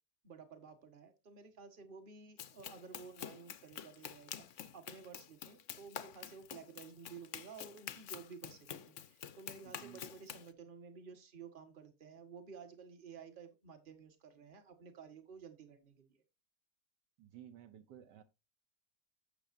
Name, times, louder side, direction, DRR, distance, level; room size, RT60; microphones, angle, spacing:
voice 1, 0.2-16.2, right 5 dB, 30° right, 1.4 m, -53 dB
Run, 2.4-10.5, left 9 dB, 60° left, 0.8 m, -48 dB
voice 2, 9.6-10.0 17.2-18.2, right 10 dB, 75° right, 1.4 m, -55 dB
11.5 x 7.6 x 2.6 m
omnidirectional pair, 1.9 m